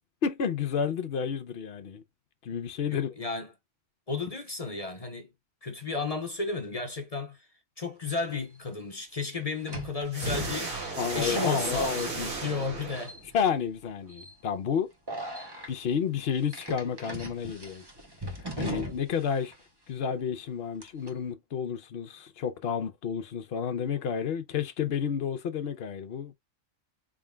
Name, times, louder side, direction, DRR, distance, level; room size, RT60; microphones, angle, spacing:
voice 1, 0.2-2.0 2.4-3.1 11.0-12.3 13.3-14.9 15.7-17.8 18.6-19.5 19.9-26.3, left 7 dB, 55° left, 0.9 m, -31 dB
voice 2, 2.9-3.5 4.1-5.3 5.6-7.5 7.8-11.9 12.4-13.2, left 4 dB, 35° left, 0.6 m, -33 dB
sound 1, 8.3-8.4 9.7-12.7 12.9-13.5 14.1-14.3 15.1-15.7 16.5-19.2 19.5-19.6 20.8-21.1, right 1 dB, 20° right, 0.8 m, -38 dB
sound 2, 10.1-13.5, right 3 dB, 65° right, 2.1 m, -35 dB
4.5 x 3.7 x 2.2 m
omnidirectional pair, 1.4 m